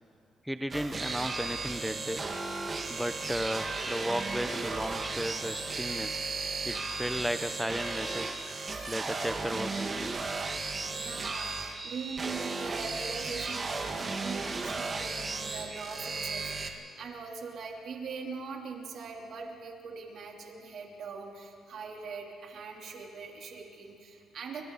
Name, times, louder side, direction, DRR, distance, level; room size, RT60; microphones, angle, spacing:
voice 1, 0.4-2.2 2.9-6.2 6.6-8.4 8.9-10.2, equal, ahead, 9 dB, 0.8 m, -34 dB
sound 1, 0.7-16.7, right 3 dB, 35° right, 2.1 m, -35 dB
sound 2, 2.9-9.2, left 5 dB, 75° left, 2.6 m, -54 dB
voice 2, 10.8-24.7, right 5 dB, 65° right, 0 dB, 3.5 m, -42 dB
29.0 x 24.5 x 4.2 m, 2.5 s
cardioid pair, 90°, 0 cm